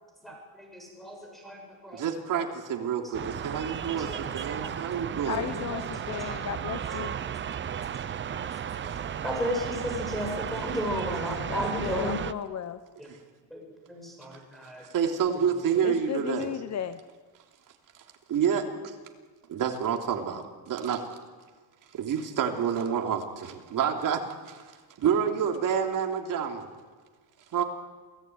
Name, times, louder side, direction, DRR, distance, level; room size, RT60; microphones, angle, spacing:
voice 1, 0.2-2.0 2.3-2.4 4.1-4.2 4.5-4.8 5.5-6.4 8.8-12.2 13.0-13.1 13.5-13.6 13.9-14.8, equal, ahead, -1 dB, 6.9 m, -34 dB
voice 2, 1.9-5.4 8.8-9.0 14.8-16.5 18.3-18.9 19.5-21.0 21.9-24.6 25.0-26.7 27.5-27.6, right 7 dB, 45° right, 3 dB, 3.4 m, -28 dB
sound 1, 3.1-12.3, right 8 dB, 25° right, 0.7 m, -34 dB
voice 3, 5.2-7.1 11.5-12.8 15.8-17.0, left 9 dB, 35° left, 11 dB, 1.0 m, -34 dB
28.0 x 17.5 x 9.5 m, 1.4 s
cardioid pair, 145°, 44 cm